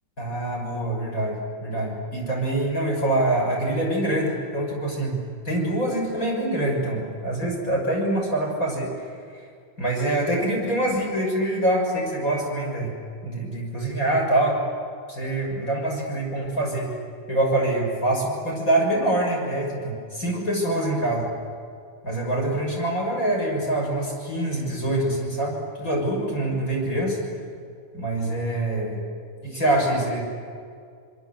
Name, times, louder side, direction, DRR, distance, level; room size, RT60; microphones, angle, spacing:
voice 1, 0.2-5.2 5.4-8.9 9.3-9.4 9.8-12.9 13.2-14.6 15.1-16.9 17.3-21.3 22.0-27.2 27.9-29.0 29.4-30.2, right 1 dB, 25° left, -1 dB, 6.1 m, -25 dB
26.0 x 24.0 x 7.9 m, 2.3 s
omnidirectional pair, 3.5 m